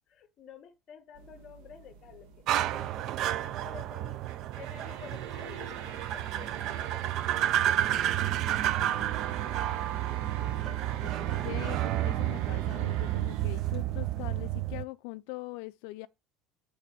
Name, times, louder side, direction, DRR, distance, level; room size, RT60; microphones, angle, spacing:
voice 1, 0.1-4.2 4.5-8.4 8.8-9.7 10.4-10.9 11.2-11.5, left 7 dB, 35° left, 1.2 m, -51 dB
sound 1, 1.1-14.4, right 7 dB, 85° right, 1.3 m, -45 dB
sound 2, 2.5-14.8, right 13 dB, 45° right, 0.3 m, -31 dB
voice 2, 11.0-16.1, left 21 dB, 80° left, 0.3 m, -42 dB
8.5 x 3.4 x 5.9 m
cardioid pair, 175°, 0 cm